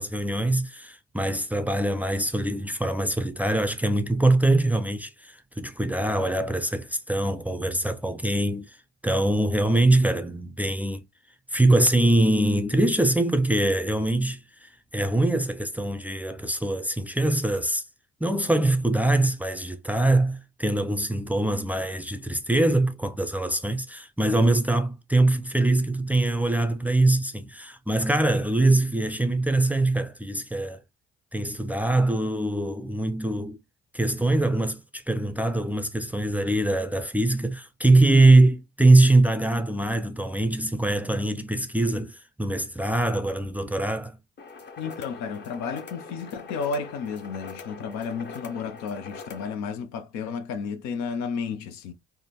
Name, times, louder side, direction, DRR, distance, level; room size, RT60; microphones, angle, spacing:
voice 1, 0.0-8.8 9.0-11.0 11.5-17.8 18.2-30.8 31.3-33.6 33.9-44.2, right 2 dB, 5° right, 0.5 m, -23 dB
sound 1, 44.4-49.5, left 4 dB, 35° left, 0.9 m, -43 dB
voice 2, 44.8-51.9, left 5 dB, 65° left, 0.6 m, -32 dB
3.4 x 2.1 x 2.8 m
hypercardioid pair, 50°, 30 cm